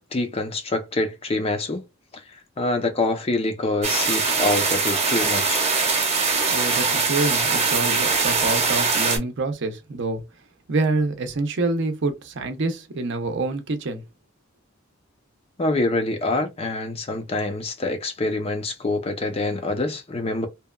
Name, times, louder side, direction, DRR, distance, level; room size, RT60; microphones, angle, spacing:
voice 1, 0.1-1.8 2.6-5.6 15.6-20.5, left 2 dB, 30° left, 0.6 m, -25 dB
sound 1, 3.8-9.2, right 4 dB, 30° right, 0.9 m, -22 dB
voice 2, 6.5-10.2 10.7-14.0, right 3 dB, 60° right, 0.6 m, -26 dB
2.8 x 2.2 x 2.2 m
head